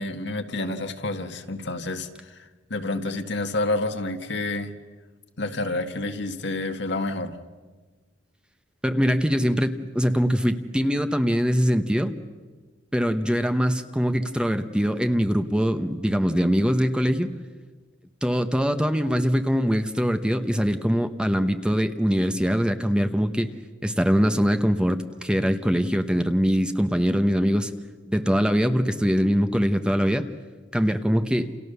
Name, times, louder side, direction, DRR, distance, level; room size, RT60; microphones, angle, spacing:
voice 1, 0.0-2.1 2.4-2.5 2.7-4.7 5.4-7.3, left 2 dB, 65° left, 6 dB, 1.8 m, -29 dB
voice 2, 8.8-12.1 12.9-17.3 18.2-23.5 23.8-27.7 28.1-30.3 30.7-31.5, equal, 5° right, 8 dB, 1.1 m, -22 dB
29.5 x 29.0 x 6.9 m, 1.3 s
head